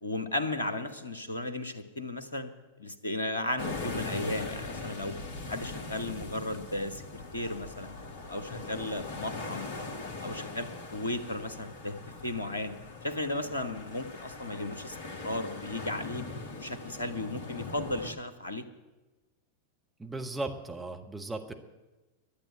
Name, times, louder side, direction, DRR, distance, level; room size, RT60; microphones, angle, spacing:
voice 1, 0.0-2.5 2.8-5.1 5.5-8.0 8.3-9.7 10.2-12.0 12.2-12.7 13.0-15.0 15.2-16.3 16.6-18.7, left 2 dB, 75° left, 11 dB, 1.2 m, -35 dB
sound 1, 3.6-18.1, left 3 dB, 50° left, 1.6 m, -41 dB
voice 2, 20.0-21.5, right 2 dB, 10° right, 3 dB, 1.5 m, -36 dB
12.0 x 8.9 x 9.9 m, 1.1 s
figure-of-eight pair, 90°, 0 cm